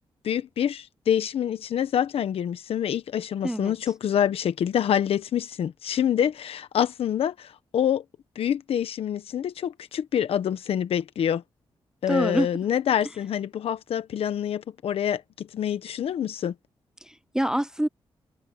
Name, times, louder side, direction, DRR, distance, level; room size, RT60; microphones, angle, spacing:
voice 1, 0.2-8.0 8.3-11.4 12.0-16.5, left 9 dB, 85° left, 1.2 m, -26 dB
voice 2, 12.1-12.5 17.0-17.9, right 1 dB, 5° right, 0.3 m, -26 dB
cardioid pair, 95°, 10 cm